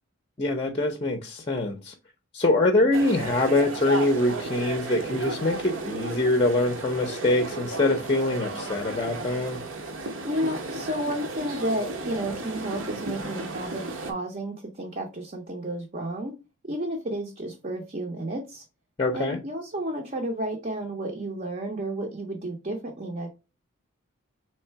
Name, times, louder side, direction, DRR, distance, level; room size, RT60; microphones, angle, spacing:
voice 1, 0.4-1.9 2.3-9.6 19.0-19.4, left 2 dB, 25° left, 5 dB, 0.6 m, -24 dB
sound 1, 2.9-14.1, right 2 dB, 65° right, 0.8 m, -34 dB
voice 2, 10.2-16.3 16.6-18.6 19.1-23.3, right 1 dB, 35° right, 1 dB, 0.6 m, -32 dB
3.7 x 3.2 x 4.4 m, 0.29 s
head